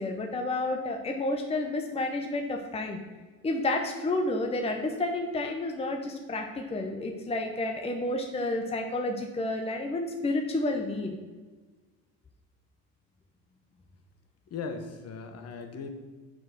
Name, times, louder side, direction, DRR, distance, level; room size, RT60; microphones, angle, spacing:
voice 1, 0.0-3.0 3.4-11.2, left 2 dB, 15° left, 4 dB, 0.8 m, -30 dB
voice 2, 14.5-15.9, left 5 dB, 45° left, 5 dB, 1.1 m, -38 dB
6.0 x 5.0 x 6.0 m, 1.3 s
supercardioid pair, 90°, 35 cm